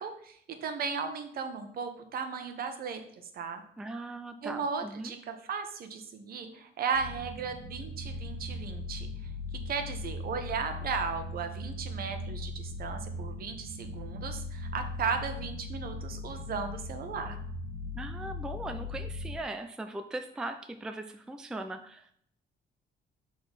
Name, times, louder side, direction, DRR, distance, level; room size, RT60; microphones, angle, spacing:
voice 1, 0.0-3.0 3.3-3.6 4.4-9.1 9.5-17.4, right 5 dB, 55° right, 7 dB, 0.9 m, -36 dB
voice 2, 3.8-5.1 18.0-22.1, right 2 dB, 5° right, 6 dB, 0.4 m, -39 dB
sound 1, 6.9-19.4, left 2 dB, 85° right, 1.0 m, -39 dB
6.2 x 3.8 x 5.2 m, 0.67 s
cardioid pair, 145°, 18 cm